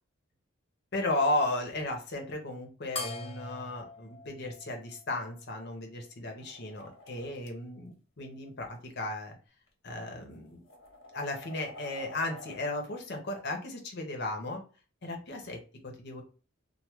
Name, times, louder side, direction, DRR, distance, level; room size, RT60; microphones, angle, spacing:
voice 1, 0.9-9.3 9.8-10.6 11.1-14.6 15.0-16.2, left 2 dB, 55° left, 2 dB, 0.8 m, -35 dB
sound 1, 3.0-5.8, left 3 dB, 30° left, 0.5 m, -42 dB
sound 2, 6.4-7.5 8.6-8.8 9.7-9.8 10.3-12.6, left 1 dB, 90° left, 1.0 m, -49 dB
3.0 x 2.0 x 3.5 m, 0.37 s
head